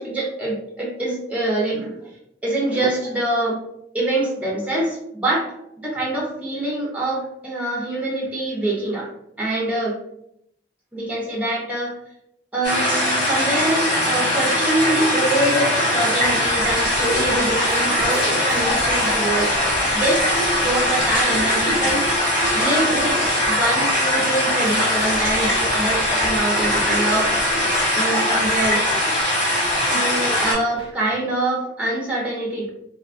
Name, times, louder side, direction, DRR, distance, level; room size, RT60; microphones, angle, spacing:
voice 1, 0.0-2.0 2.4-3.6 3.9-9.1 9.4-10.0 10.9-11.9 12.5-19.5 19.9-22.0 22.5-23.2 23.5-27.3 27.9-28.9 29.9-32.7, right 1 dB, 10° right, -3 dB, 0.5 m, -24 dB
sound 1, 12.6-30.5, left 1 dB, 80° left, 1.4 m, -21 dB
sound 2, 16.2-31.0, equal, 30° left, 0.7 m, -38 dB
2.6 x 2.2 x 2.4 m, 0.75 s
head